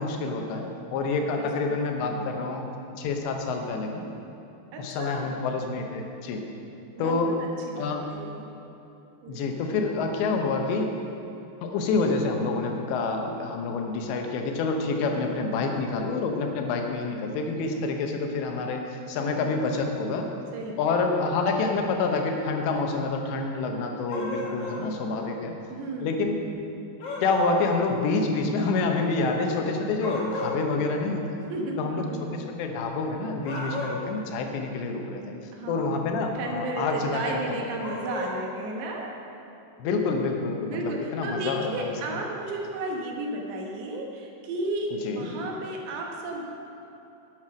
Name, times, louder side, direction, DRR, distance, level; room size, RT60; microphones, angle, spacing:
voice 1, 0.0-2.6 3.0-4.0 4.8-6.4 7.0-7.3 7.8-8.0 9.3-11.0 11.6-20.3 20.8-25.6 26.0-26.4 27.2-31.4 31.8-35.2 35.7-37.7 39.8-41.9 45.0-45.3, left 3 dB, 80° left, 3 dB, 3.3 m, -27 dB
voice 2, 2.0-2.4 4.7-5.4 7.0-8.5 9.2-9.4 19.3-19.8 20.5-20.8 25.7-26.1 31.5-32.2 33.5-33.6 35.5-36.1 36.4-39.1 40.7-46.6, right 2 dB, 75° right, 0 dB, 3.3 m, -34 dB
sound 1, 24.1-24.9 27.0-27.9 30.0-30.6 33.4-34.1 37.8-38.4, left 2 dB, 50° left, 1.9 m, -34 dB
10.0 x 9.4 x 6.2 m, 2.9 s
omnidirectional pair, 5.1 m